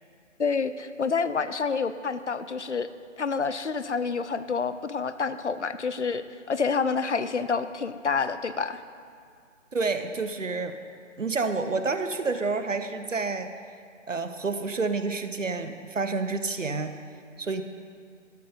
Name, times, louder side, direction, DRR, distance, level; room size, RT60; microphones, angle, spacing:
voice 1, 0.4-2.9 3.2-8.8, left 5 dB, 65° left, 12 dB, 0.6 m, -28 dB
voice 2, 9.7-10.8 11.2-13.5 14.1-17.0 17.4-17.6, right 4 dB, 75° right, 9 dB, 1.0 m, -29 dB
13.0 x 7.7 x 5.4 m, 2.2 s
figure-of-eight pair, 150°, 38 cm